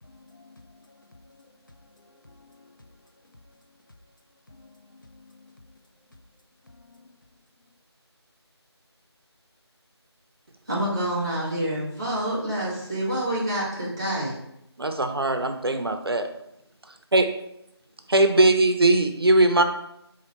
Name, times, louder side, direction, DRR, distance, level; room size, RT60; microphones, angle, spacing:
voice 1, 0.0-2.4 4.5-5.5 6.7-7.1, left 3 dB, 45° left, 4 dB, 0.4 m, -53 dB
voice 2, 10.7-14.3, right 1 dB, 10° right, -8 dB, 0.7 m, -27 dB
voice 3, 14.8-16.3 17.1-17.3 18.1-19.6, right 2 dB, 60° right, 6 dB, 0.5 m, -20 dB
4.0 x 2.6 x 4.3 m, 0.80 s
figure-of-eight pair, 165°, 14 cm